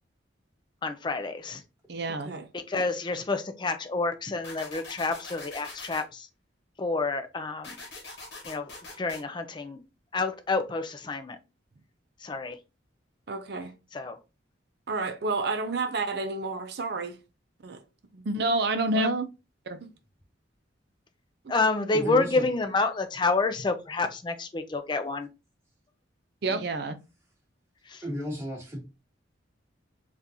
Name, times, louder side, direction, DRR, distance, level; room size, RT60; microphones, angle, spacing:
voice 1, 0.8-1.6 2.7-6.3 6.8-7.8 8.5-8.7 9.0-9.8 10.1-11.4 12.2-12.6 13.9-14.2 21.5-25.3 27.9-28.0, left 3 dB, 25° left, 0.4 m, -28 dB
voice 2, 1.9-2.5 13.3-13.7 14.9-17.2 17.6-17.8 18.1-19.3 19.7-19.9 26.4-27.0, right 2 dB, 55° right, 0.5 m, -29 dB
sound 1, 4.4-6.0 7.6-9.2, left 3 dB, 60° left, 1.1 m, -43 dB
voice 3, 21.9-22.4 28.0-28.8, equal, 15° right, 1.2 m, -34 dB
3.7 x 2.5 x 2.7 m
head